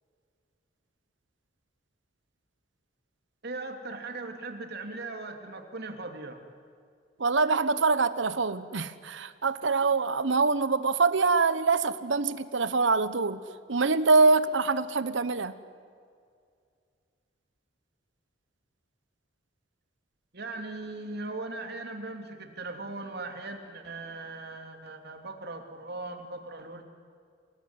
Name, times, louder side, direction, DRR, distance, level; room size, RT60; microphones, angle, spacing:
voice 1, 3.4-6.4 20.3-26.9, right 2 dB, 60° right, 4 dB, 2.8 m, -39 dB
voice 2, 7.2-13.4 13.7-15.5, right 4 dB, 85° right, 14 dB, 1.0 m, -24 dB
26.5 x 18.5 x 9.8 m, 2.2 s
head